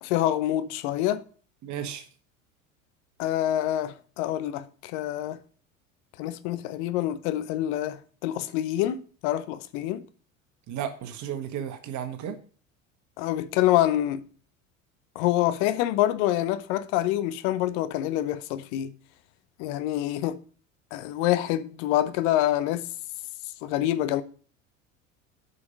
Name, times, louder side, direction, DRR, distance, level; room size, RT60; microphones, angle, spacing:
voice 1, 0.0-1.2 3.2-5.4 6.2-10.0 13.2-14.2 15.1-18.9 19.6-20.4 20.9-22.9 23.6-24.2, left 13 dB, 60° left, 0.8 m, -26 dB
voice 2, 1.6-2.1 10.7-12.4, right 9 dB, 45° right, 1.7 m, -33 dB
8.1 x 5.7 x 6.3 m
hypercardioid pair, 75°, 40 cm